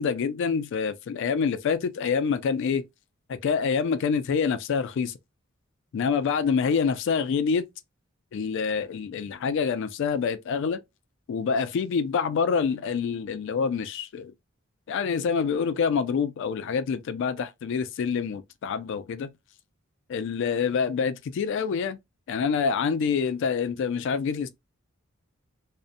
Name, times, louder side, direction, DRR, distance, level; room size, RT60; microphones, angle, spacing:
voice 1, 0.0-2.8 3.3-5.1 5.9-7.7 8.3-10.8 11.3-14.3 14.9-19.3 20.1-22.0 22.3-24.5, left 6 dB, 60° left, 0.3 m, -26 dB
2.6 x 2.0 x 2.5 m
head